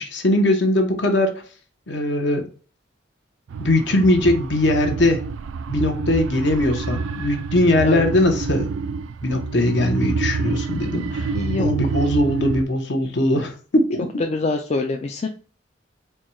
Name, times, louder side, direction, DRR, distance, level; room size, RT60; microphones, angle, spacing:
voice 1, 0.0-1.4 1.9-2.5 3.6-5.2 5.7-8.7 9.2-14.1, left 1 dB, 65° left, 4 dB, 1.0 m, -20 dB
sound 1, 3.5-12.6, right 4 dB, 85° right, 0.4 m, -27 dB
voice 2, 11.3-11.7 14.2-15.3, left 3 dB, 35° left, 4 dB, 0.4 m, -24 dB
4.5 x 2.3 x 4.3 m, 0.38 s
head